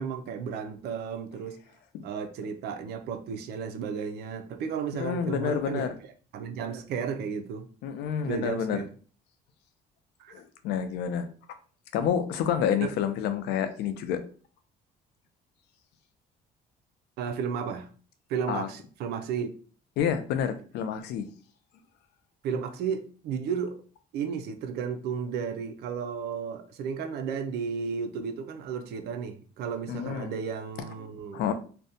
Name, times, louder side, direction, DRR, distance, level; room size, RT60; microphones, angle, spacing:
voice 1, 0.0-1.6 2.0-5.9 6.3-7.7 8.2-8.9 10.2-10.4 12.8-12.9 17.2-17.9 18.3-19.5 22.4-23.8 24.1-31.4, right 6 dB, 75° right, 0.4 m, -33 dB
voice 2, 4.9-5.9 7.8-8.8 10.3-11.3 11.9-14.2 18.5-18.7 20.0-21.3 29.9-30.3 31.3-31.5, left 8 dB, 80° left, 0.4 m, -29 dB
2.6 x 2.1 x 2.6 m
cardioid pair, 110°, 17 cm